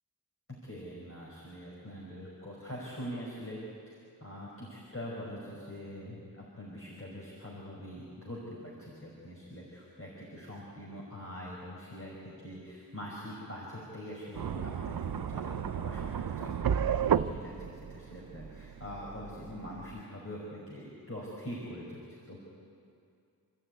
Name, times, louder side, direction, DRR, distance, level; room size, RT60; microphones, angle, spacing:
voice 1, 0.6-3.6 3.9-4.0 4.2-16.7 17.0-22.4, equal, 35° left, -5 dB, 5.5 m, -43 dB
sound 1, 14.3-20.0, right 8 dB, 70° right, 0.6 m, -33 dB
28.5 x 12.5 x 9.6 m, 2.5 s
wide cardioid pair, 50°, 37 cm